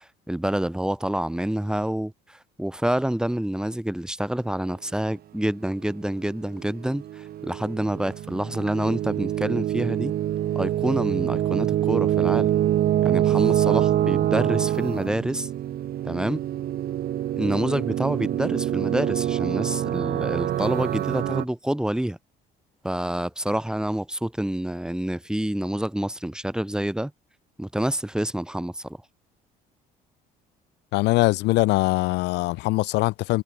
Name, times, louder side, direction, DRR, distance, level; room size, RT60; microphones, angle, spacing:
voice 1, 0.0-10.1 10.5-12.5 13.0-15.5 16.0-16.4 17.4-22.2 22.8-27.1 27.6-29.0, right 1 dB, 5° right, 8.0 m, -27 dB
sound 1, 6.6-21.4, right 12 dB, 65° right, 5.4 m, -25 dB
voice 2, 30.9-33.4, left 21 dB, 90° left, 2.3 m, -22 dB
cardioid pair, 110°, 17 cm